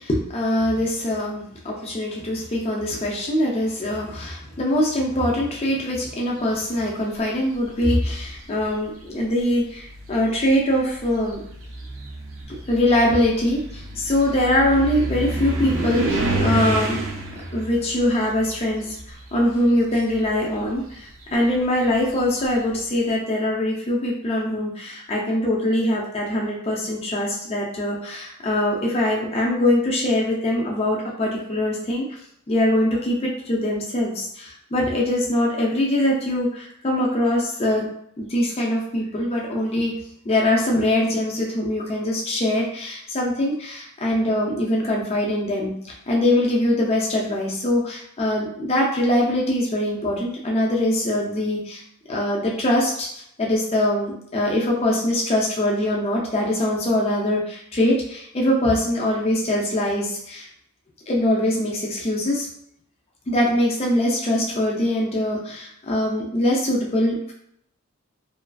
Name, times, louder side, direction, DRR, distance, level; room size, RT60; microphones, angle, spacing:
voice 1, 0.0-11.4 12.5-17.0 17.5-32.2 32.5-37.9 38.2-39.9 40.2-45.7 46.1-51.8 52.1-53.1 53.4-60.5 61.1-62.5 63.3-67.3, left 1 dB, 25° left, -2 dB, 0.4 m, -23 dB
sound 1, 7.5-8.1 9.1-9.2 9.7-19.6 19.9-22.6, right 2 dB, 65° right, 0.5 m, -29 dB
2.4 x 2.3 x 2.2 m, 0.70 s
head